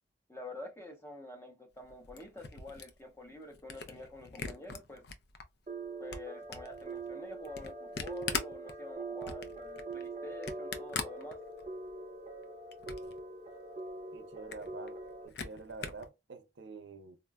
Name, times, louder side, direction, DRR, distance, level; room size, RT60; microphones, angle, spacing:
voice 1, 0.3-5.0 6.0-11.4, left 2 dB, 15° left, 0.6 m, -47 dB
Camera, 1.8-5.4 5.8-11.9 12.3-13.2 13.5-13.6 13.9-14.0 14.3-16.1, left 5 dB, 65° left, 0.5 m, -42 dB
sound 1, 5.7-15.3, right 3 dB, 35° right, 0.5 m, -43 dB
voice 2, 14.1-15.0 15.2-17.2, right 4 dB, 80° right, 0.5 m, -47 dB
3.8 x 2.2 x 2.2 m
head